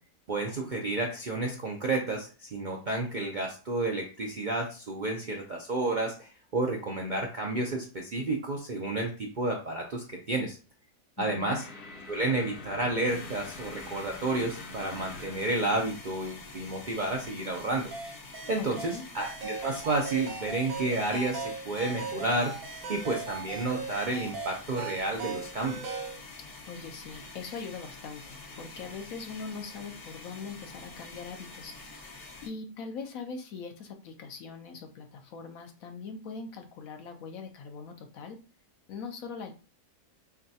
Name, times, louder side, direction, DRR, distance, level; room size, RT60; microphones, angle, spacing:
voice 1, 0.3-10.6 11.2-11.6 12.1-17.9 18.5-22.5 22.9-25.9, right 2 dB, 55° right, 0 dB, 0.5 m, -31 dB
voice 2, 11.2-11.6 18.6-19.0 26.7-31.7 32.4-38.4 38.9-39.5, left 5 dB, 70° left, 4 dB, 1.1 m, -41 dB
sound 1, 11.5-17.9, left 2 dB, 85° left, 1.8 m, -46 dB
sound 2, 13.0-32.5, left 3 dB, 45° left, 0.7 m, -47 dB
sound 3, 17.9-26.2, right 5 dB, 75° right, 1.3 m, -38 dB
6.2 x 2.3 x 2.8 m, 0.35 s
omnidirectional pair, 1.5 m